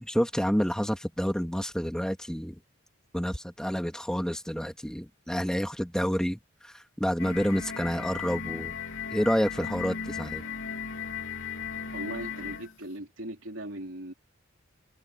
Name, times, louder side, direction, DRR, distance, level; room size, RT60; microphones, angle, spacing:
voice 1, 0.0-2.6 3.1-8.7 9.1-10.4, equal, 5° left, 2.0 m, -29 dB
sound 1, 7.2-12.7, left 6 dB, 65° left, 3.6 m, -36 dB
voice 2, 11.9-14.1, right 1 dB, 60° right, 4.1 m, -39 dB
open air
head